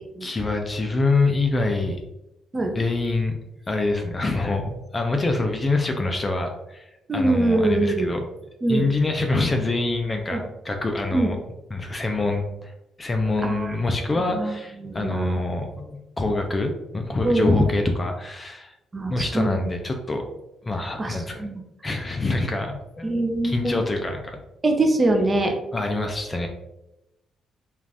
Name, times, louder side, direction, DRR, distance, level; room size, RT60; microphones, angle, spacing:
voice 1, 0.2-2.0 2.7-3.3 3.7-6.8 7.1-8.2 8.7-11.4 11.7-12.7 13.0-18.7 19.1-20.2 20.7-21.4 21.8-24.4 25.7-26.5, left 2 dB, 25° left, 4 dB, 0.4 m, -25 dB
voice 2, 7.1-8.2 8.6-8.9 10.3-10.4 11.1-11.3 13.4-13.8 14.3-14.5 14.8-15.4 17.2-17.6 18.9-19.7 21.0-21.6 23.0-23.8 24.6-25.5, right 2 dB, 25° right, 3 dB, 0.5 m, -23 dB
2.5 x 2.4 x 3.2 m, 0.90 s
cardioid pair, 90°, 0 cm